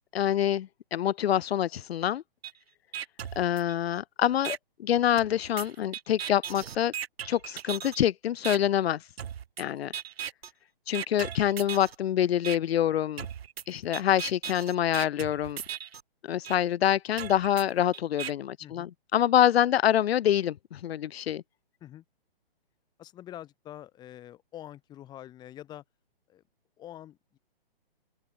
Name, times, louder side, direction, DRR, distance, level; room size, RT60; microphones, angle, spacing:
voice 1, 0.1-2.2 3.4-6.9 7.2-9.0 9.6-9.9 10.9-13.3 13.7-15.6 16.2-21.4, left 11 dB, 85° left, 0.5 m, -26 dB
sound 1, 2.4-2.5 2.9-4.0 4.4-4.6 5.2-8.0 8.4-8.6 9.2-9.6 9.9-10.5 10.9-12.0 12.4-12.6 13.2-16.0 16.4-16.6 17.2-18.3, right 9 dB, 90° right, 0.7 m, -37 dB
voice 2, 18.6-18.9 21.8-22.0 23.0-25.8 26.3-26.4 26.8-27.4, left 12 dB, 15° left, 3.0 m, -45 dB
hypercardioid pair, 160°, 30 cm